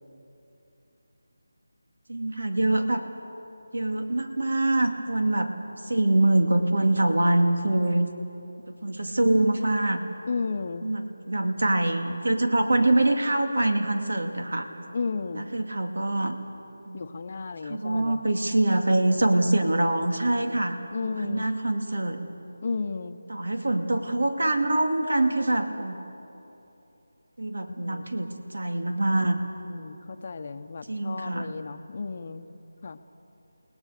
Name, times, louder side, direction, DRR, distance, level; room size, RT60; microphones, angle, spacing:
voice 1, 2.1-3.1 3.7-5.5 5.8-8.1 8.7-10.0 10.8-14.9 15.3-16.4 16.9-17.0 17.6-22.2 23.3-26.0 27.4-29.4 30.9-31.5, right 1 dB, 80° right, 5 dB, 2.4 m, -24 dB
voice 2, 10.3-10.9 14.9-15.5 16.9-18.2 20.9-21.5 22.6-23.2 27.8-28.1 29.7-32.5 32.8-33.0, left 4 dB, 40° left, 9 dB, 0.9 m, -33 dB
30.0 x 18.5 x 6.8 m, 2.9 s
figure-of-eight pair, 170°, 0 cm